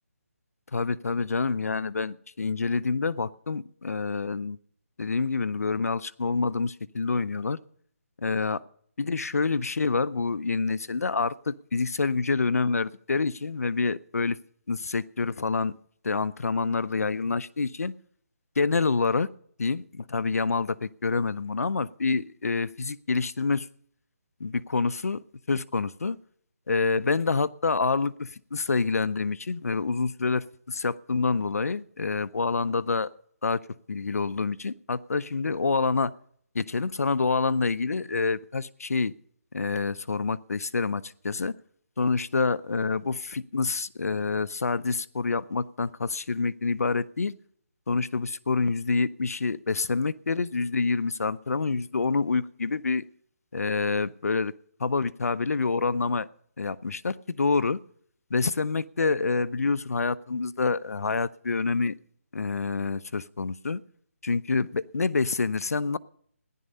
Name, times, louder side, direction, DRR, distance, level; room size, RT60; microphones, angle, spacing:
voice 1, 0.7-4.6 5.0-7.6 8.2-8.6 9.0-14.4 14.7-15.7 16.0-17.9 18.6-19.3 19.6-23.7 24.4-26.2 26.7-33.1 33.4-33.6 33.9-36.1 36.5-39.1 39.5-41.5 42.0-47.3 47.9-53.0 53.5-54.5 54.8-56.3 56.6-57.8 58.3-61.9 62.3-63.8 64.2-66.0, left 4 dB, 85° left, 17 dB, 0.6 m, -27 dB
15.0 x 11.0 x 5.4 m, 0.62 s
hypercardioid pair, 180°, 8 cm